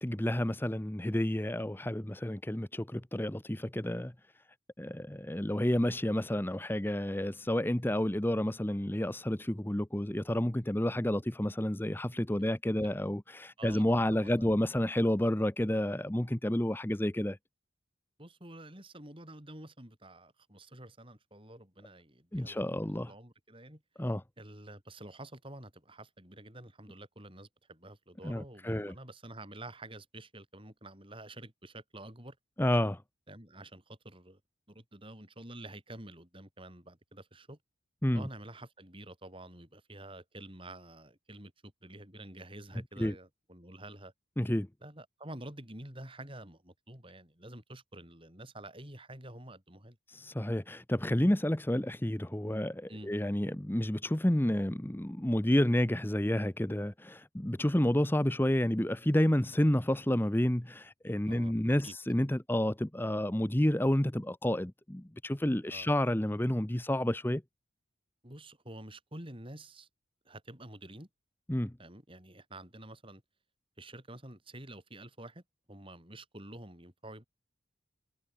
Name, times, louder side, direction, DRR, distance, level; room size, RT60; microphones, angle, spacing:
voice 1, 0.0-4.1 4.8-17.4 22.3-23.1 24.0-24.2 28.2-29.0 32.6-33.0 38.0-38.3 43.0-43.1 44.4-44.7 50.1-67.4 71.5-71.7, left 1 dB, 10° left, 0.8 m, -30 dB
voice 2, 14.1-14.5 18.2-22.8 23.0-32.4 33.3-34.4 34.7-37.6 38.1-44.1 44.8-50.0 52.9-53.1 61.3-62.0 65.7-65.9 68.2-69.9 70.3-71.1 71.8-73.2 73.8-75.4 75.7-77.3, right 1 dB, 25° right, 6.9 m, -49 dB
head